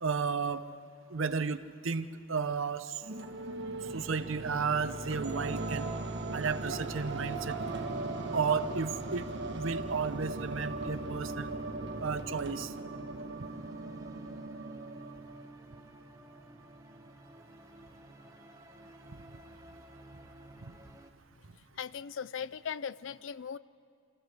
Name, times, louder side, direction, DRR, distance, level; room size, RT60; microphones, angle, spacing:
voice 1, 0.0-0.6 1.1-3.0 3.9-5.9 6.3-7.6 8.3-9.2 9.5-11.5 12.0-12.7, right 5 dB, 75° right, 12 dB, 0.7 m, -33 dB
sound 1, 3.0-16.0, right 2 dB, 55° right, 1.3 m, -38 dB
sound 2, 5.9-21.1, right 1 dB, 15° right, 0.9 m, -53 dB
voice 2, 21.8-23.6, left 7 dB, 70° left, 17 dB, 0.4 m, -38 dB
24.0 x 14.5 x 7.8 m, 2.2 s
head